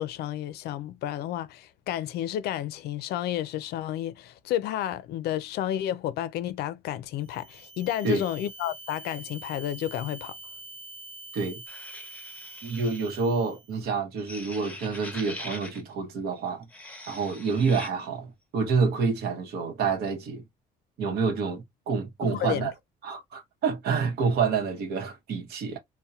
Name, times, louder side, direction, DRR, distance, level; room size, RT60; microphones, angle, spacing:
voice 1, 0.0-10.3 22.2-22.7, left 12 dB, 70° left, 0.4 m, -31 dB
sound 1, 7.2-13.8, right 3 dB, 30° right, 0.4 m, -45 dB
sound 2, 11.7-13.2 14.2-15.8 16.6-17.9, left 1 dB, 10° left, 0.7 m, -42 dB
voice 2, 12.6-16.7 17.1-20.4 21.0-22.7 23.0-25.8, right 5 dB, 70° right, 0.9 m, -28 dB
2.7 x 2.1 x 2.3 m
cardioid pair, 110°, 17 cm